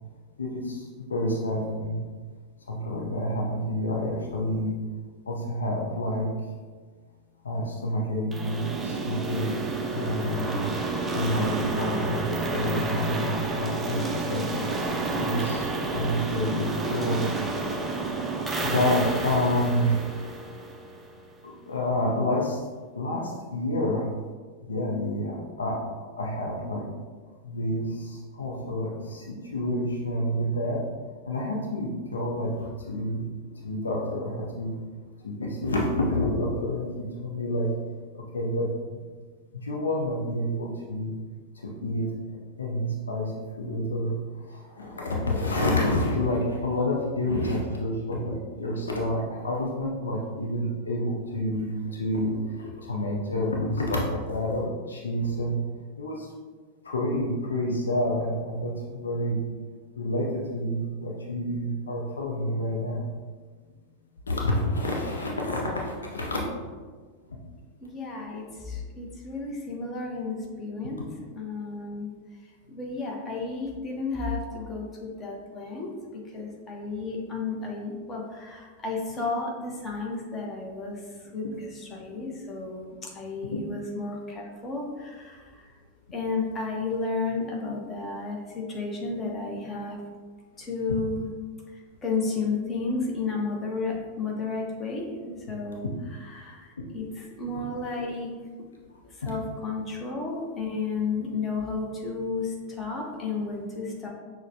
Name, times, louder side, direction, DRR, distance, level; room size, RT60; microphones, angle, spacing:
voice 1, 0.4-2.0 2.7-4.7 5.3-6.3 7.4-9.5 9.9-10.5 11.1-14.4 15.1-17.2 18.0-20.0 21.4-22.6 23.0-24.1 24.6-25.8 26.2-26.8 27.4-30.8 31.3-33.2 33.5-34.7 35.2-37.7 38.1-38.7 39.6-41.1 41.6-42.1 42.6-43.3 43.6-44.2 44.5-51.7 52.0-55.6 56.0-56.3 56.8-59.4 60.0-63.0 64.3-66.4 97.5-97.6 99.2-99.3, left 1 dB, 70° left, -1 dB, 0.5 m, -28 dB
sound 1, 8.3-21.2, right 3 dB, 10° right, 0.4 m, -30 dB
voice 2, 67.8-71.1 71.3-72.1 72.7-75.9 76.3-81.0 81.3-85.7 86.1-90.0 90.6-91.3 91.7-95.9 96.2-98.3 99.2-104.1, left 4 dB, 20° left, -1 dB, 0.8 m, -32 dB
6.1 x 2.1 x 2.7 m, 1.5 s
figure-of-eight pair, 90°, 0 cm